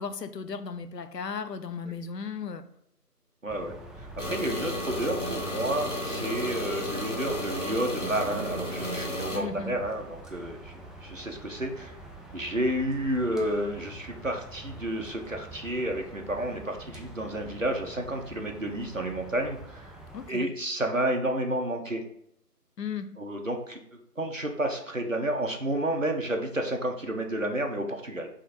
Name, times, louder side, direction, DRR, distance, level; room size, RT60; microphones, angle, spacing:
voice 1, 0.0-2.7 9.3-9.7 20.1-20.5 22.8-23.2, left 6 dB, 80° left, 0.6 m, -35 dB
voice 2, 3.4-10.7 11.0-12.0 12.3-19.9 20.3-22.0 23.2-23.8 24.2-28.3, right 1 dB, 50° right, 0.7 m, -31 dB
sound 1, 3.5-20.3, right 2 dB, ahead, 0.4 m, -46 dB
sound 2, 4.2-9.4, left 1 dB, 50° left, 0.9 m, -33 dB
3.7 x 3.5 x 4.1 m
figure-of-eight pair, 180°, 48 cm